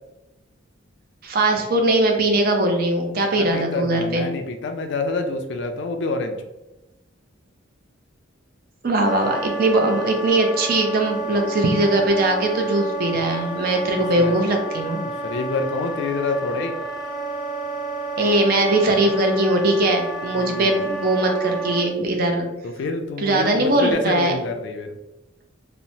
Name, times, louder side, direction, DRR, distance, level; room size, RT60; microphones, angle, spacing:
voice 1, 1.2-4.2 8.8-15.0 18.2-22.5 23.2-24.4, right 2 dB, 50° right, 3 dB, 0.4 m, -20 dB
voice 2, 3.4-6.4 14.1-14.4 14.8-16.8 20.3-20.8 22.6-25.0, left 3 dB, 60° left, 5 dB, 0.3 m, -27 dB
Wind instrument woodwind instrument, 9.0-21.9, right 3 dB, ahead, 0.5 m, -30 dB
2.9 x 2.0 x 2.6 m, 0.99 s
head